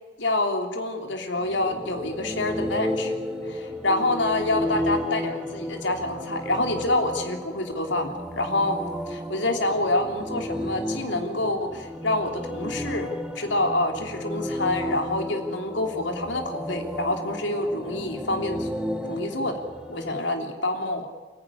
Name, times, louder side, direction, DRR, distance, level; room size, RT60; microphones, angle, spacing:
voice 1, 0.2-3.1 3.4-8.8 9.1-18.7 19.1-19.6 19.9-21.1, left 2 dB, 75° left, 4 dB, 3.1 m, -27 dB
sound 1, 1.3-20.1, equal, 5° right, 1.6 m, -33 dB
28.5 x 15.0 x 9.9 m, 1.4 s
head